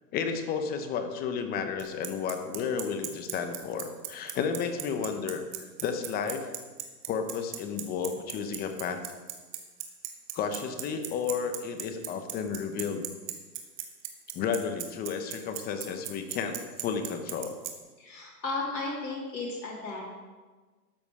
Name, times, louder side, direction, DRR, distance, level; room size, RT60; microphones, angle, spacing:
voice 1, 0.1-6.5 7.1-9.0 10.3-13.1 14.3-17.6, left 6 dB, 20° left, 7 dB, 0.9 m, -32 dB
Bicycle, 1.8-17.7, right 15 dB, 40° right, 1.7 m, -36 dB
voice 2, 18.0-20.0, left 3 dB, 85° left, -5 dB, 3.1 m, -34 dB
13.0 x 8.2 x 4.9 m, 1.3 s
hypercardioid pair, 130°, 50 cm